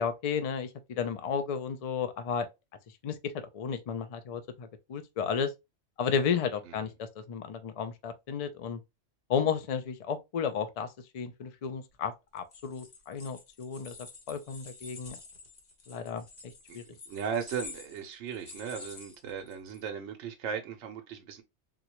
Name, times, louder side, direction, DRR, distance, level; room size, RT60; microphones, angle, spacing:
voice 1, 0.0-2.5 3.0-5.5 6.0-8.8 9.3-10.9 11.1-14.0 14.3-15.2 15.9-16.8, left 6 dB, 65° left, 0.3 m, -33 dB
sound 1, 12.4-19.8, left 3 dB, 40° left, 0.8 m, -49 dB
voice 2, 17.1-21.4, right 7 dB, 75° right, 0.9 m, -37 dB
3.9 x 2.2 x 2.9 m
omnidirectional pair, 1.3 m